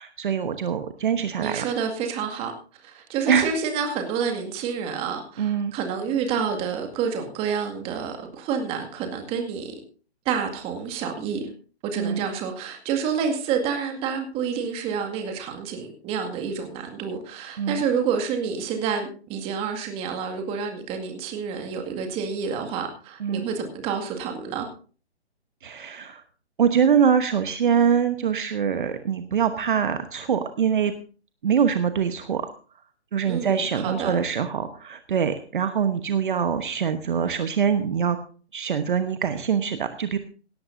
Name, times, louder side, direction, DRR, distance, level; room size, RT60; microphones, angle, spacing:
voice 1, 0.0-1.6 3.3-3.5 5.4-5.7 12.0-12.3 17.6-17.8 23.2-23.5 25.6-26.2 26.6-30.9 31.4-32.5 33.1-38.2 38.5-40.2, right 7 dB, 50° right, 9 dB, 1.1 m, -24 dB
voice 2, 1.4-2.5 2.8-9.7 10.3-11.5 11.8-24.7 33.2-34.2, right 6 dB, 15° right, 5 dB, 2.0 m, -28 dB
17.5 x 13.0 x 2.7 m, 0.39 s
figure-of-eight pair, 140°, 34 cm